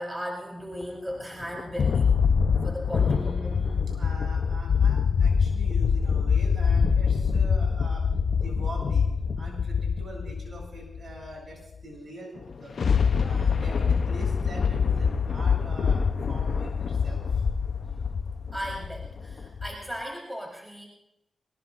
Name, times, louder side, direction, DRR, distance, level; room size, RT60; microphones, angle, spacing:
voice 1, 0.0-2.2 2.6-3.4 18.5-20.9, equal, 15° right, -2 dB, 4.2 m, -36 dB
sound 1, 0.8-0.9 1.4-11.1 12.4-19.7, left 6 dB, 70° left, 0.8 m, -25 dB
voice 2, 2.9-8.0 8.3-9.1 9.4-12.3 12.6-12.8 13.2-17.4, right 1 dB, 55° right, -1 dB, 7.8 m, -42 dB
22.0 x 20.0 x 2.6 m, 0.87 s
cardioid pair, 55°, 0 cm